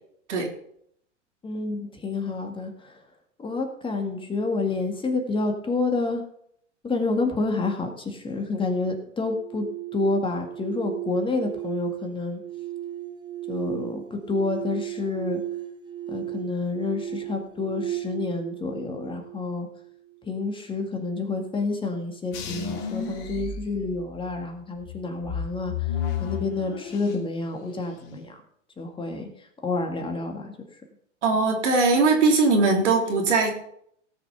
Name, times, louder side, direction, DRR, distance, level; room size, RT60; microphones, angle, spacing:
voice 1, 1.4-2.9 3.4-6.2 6.8-9.7 9.9-12.4 13.5-15.4 16.1-19.7 20.3-25.7 26.2-28.4 28.8-29.3 29.6-30.5, left 3 dB, 15° left, 4 dB, 2.0 m, -28 dB
sound 1, 9.2-20.2, right 12 dB, 10° right, 0.9 m, -36 dB
sound 2, 22.3-24.4 24.8-27.4 27.7-28.3, left 7 dB, 50° left, 2.3 m, -32 dB
voice 2, 31.2-33.5, right 3 dB, 70° right, 1 dB, 3.6 m, -20 dB
17.5 x 6.0 x 5.8 m, 0.68 s
hypercardioid pair, 105°, 36 cm